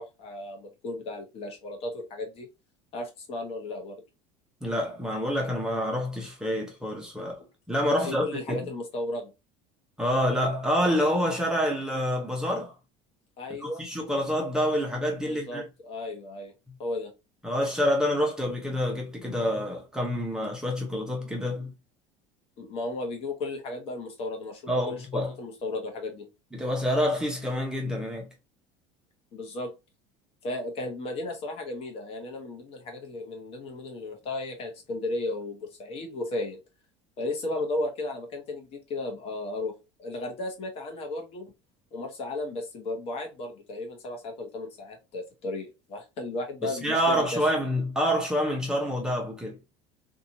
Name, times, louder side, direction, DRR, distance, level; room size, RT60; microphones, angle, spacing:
voice 1, 0.0-2.5 2.9-4.0 7.4-7.5 8.0-9.3 13.4-13.8 15.2-16.5 16.8-17.1 22.6-26.3 29.3-29.7 30.4-36.6 37.2-39.7 40.0-41.5 41.9-47.4, left 2 dB, 45° left, 1.0 m, -34 dB
voice 2, 4.6-7.4 7.7-8.6 10.0-12.7 13.6-15.6 17.4-21.7 24.7-25.3 26.5-28.3 46.6-49.6, equal, 5° right, 0.8 m, -27 dB
2.8 x 2.5 x 2.6 m
supercardioid pair, 130°, 14 cm